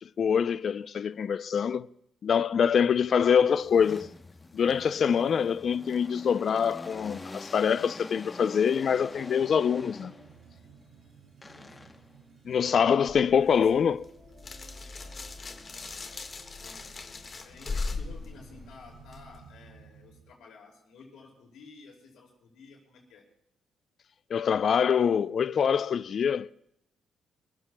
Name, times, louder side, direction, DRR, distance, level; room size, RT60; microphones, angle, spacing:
voice 1, 0.0-1.9 2.2-4.1 4.5-10.1 12.4-14.0 24.3-26.7, left 7 dB, 55° left, 0.4 m, -25 dB
sound 1, 2.9-10.5 11.4-12.2 15.4-16.2 16.7-19.0, left 2 dB, 20° left, 0.9 m, -46 dB
sound 2, 8.8-20.3, right 4 dB, 80° right, 7.5 m, -55 dB
voice 2, 11.5-11.9 13.3-13.8 16.6-16.9 17.4-23.2, left 4 dB, 80° left, 6.1 m, -52 dB
sound 3, 13.1-19.4, left 3 dB, 40° left, 1.5 m, -39 dB
29.5 x 15.5 x 2.2 m
cardioid pair, 90°, 0 cm